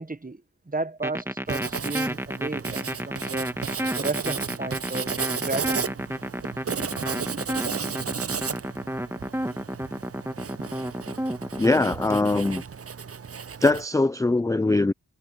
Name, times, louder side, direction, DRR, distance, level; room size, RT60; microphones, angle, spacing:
voice 1, 0.0-3.5 4.0-6.0, right 3 dB, 20° right, 1.0 m, -33 dB
sound 1, 1.0-12.6, equal, 5° right, 1.7 m, -31 dB
Writing, 1.5-13.9, right 6 dB, 40° right, 0.6 m, -34 dB
voice 2, 11.6-12.6 13.6-14.9, left 2 dB, 10° left, 0.4 m, -22 dB
wide cardioid pair, 50°, 38 cm